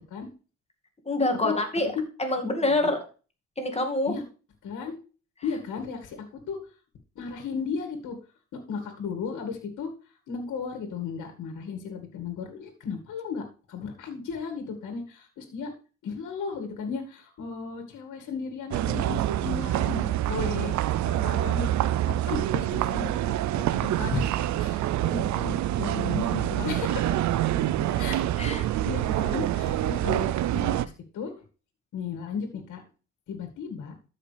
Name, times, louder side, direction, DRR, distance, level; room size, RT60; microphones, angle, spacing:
voice 1, 1.1-1.9 2.2-3.0 3.6-4.2 23.8-23.9 27.5-27.9 28.4-28.6, left 2 dB, 20° left, 4 dB, 2.2 m, -26 dB
voice 2, 4.6-5.0 5.4-6.6 7.2-8.2 8.7-9.9 10.3-13.4 13.7-15.7 16.0-21.7 22.1-27.2 28.0-28.3 28.8-31.3 31.9-32.8 33.3-33.9, left 5 dB, 80° left, 4 dB, 2.1 m, -35 dB
sound 1, 18.7-30.9, right 13 dB, 70° right, 0.6 m, -26 dB
13.0 x 5.7 x 3.4 m, 0.35 s
cardioid pair, 90°, 30 cm